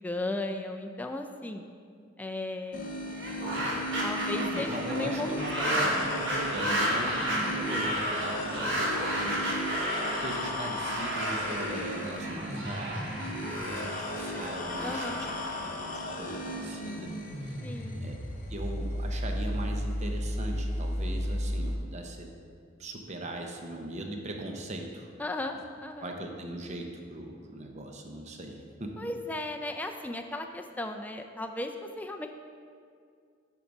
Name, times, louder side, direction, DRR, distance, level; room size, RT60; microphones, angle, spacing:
voice 1, 0.0-1.6 2.2-3.0 4.0-5.3 5.6-6.1 14.8-15.3 17.6-18.1 25.2-26.1 29.0-32.3, left 2 dB, 10° left, 4 dB, 0.3 m, -36 dB
sound 1, 2.7-21.8, left 1 dB, 45° left, 0.7 m, -35 dB
sound 2, 3.1-16.3, equal, 65° right, 1.5 m, -32 dB
voice 2, 4.3-9.4 10.2-17.1 17.4-17.6 18.0-18.1 18.5-22.3 22.8-25.1 26.0-29.1, right 1 dB, 35° right, 2 dB, 0.8 m, -39 dB
8.8 x 4.6 x 5.3 m, 2.2 s
head